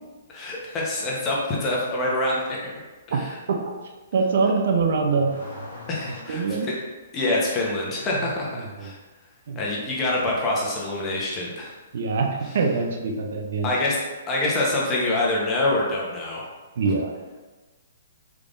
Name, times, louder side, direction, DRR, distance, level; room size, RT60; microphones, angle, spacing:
voice 1, 0.3-3.4 5.9-6.8 7.1-9.0 9.6-11.8 12.4-12.6 13.6-16.5, left 2 dB, 25° left, -3 dB, 0.9 m, -26 dB
voice 2, 4.1-5.3 6.3-6.7 8.8-8.9 9.5-9.6 11.9-12.3 12.5-13.7 16.8-17.1, right 4 dB, 65° right, 3 dB, 0.5 m, -23 dB
Car / Accelerating revving vroom, 4.6-6.8, left 1 dB, 75° left, 1.1 m, -41 dB
3.5 x 3.3 x 2.5 m, 1.2 s
hypercardioid pair, 135°, 0 cm